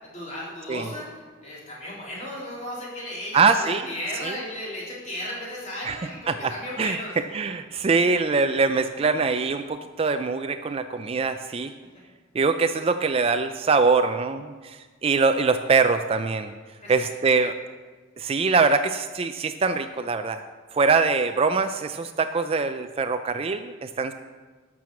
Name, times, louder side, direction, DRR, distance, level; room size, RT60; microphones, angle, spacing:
voice 1, 0.0-7.2 16.8-17.0, left 1 dB, 35° left, -5 dB, 3.7 m, -35 dB
voice 2, 3.3-3.8 4.2-4.4 5.8-6.0 6.3-6.5 6.8-7.0 7.3-11.7 12.3-16.5 16.9-17.5 18.2-20.4 20.7-24.1, right 4 dB, 30° right, 9 dB, 0.3 m, -23 dB
12.0 x 6.2 x 7.0 m, 1.4 s
head